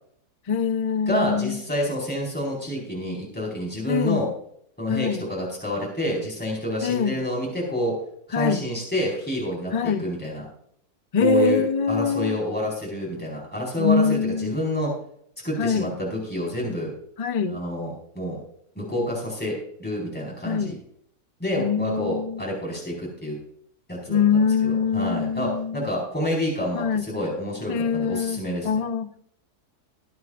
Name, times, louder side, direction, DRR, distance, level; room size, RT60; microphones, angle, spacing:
voice 1, 0.5-1.6 3.9-4.3 4.9-5.3 6.8-7.2 8.3-8.6 9.7-10.0 11.1-12.4 13.8-14.6 15.6-15.9 17.2-17.6 20.4-20.8 21.4-22.4 24.1-25.9 26.7-27.1 27.7-29.2, left 5 dB, 65° left, 0.3 m, -24 dB
voice 2, 1.1-4.3 4.8-7.9 8.3-10.4 11.2-11.6 11.9-14.9 15.4-16.9 17.5-18.4 18.7-20.8 21.4-23.4 23.9-28.7, equal, 5° left, 4.8 m, -28 dB
21.5 x 9.3 x 2.5 m
omnidirectional pair, 1.7 m